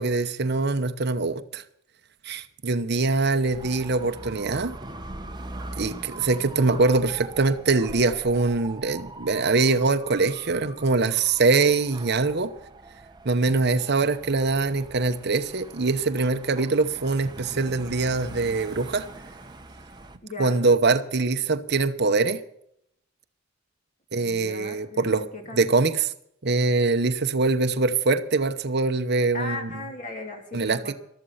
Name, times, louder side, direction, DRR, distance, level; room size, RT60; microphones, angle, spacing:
voice 1, 0.0-1.6 2.2-4.7 5.8-12.5 13.2-19.0 20.4-22.4 24.1-25.2 25.5-26.1 26.4-29.7 30.5-30.9, right 3 dB, 55° right, 0.9 m, -23 dB
Dog / Motorcycle, 3.4-20.2, right 2 dB, 20° right, 1.0 m, -42 dB
voice 2, 20.2-20.6 24.2-25.6 29.3-30.9, left 2 dB, 40° left, 2.8 m, -37 dB
14.0 x 13.0 x 5.6 m
head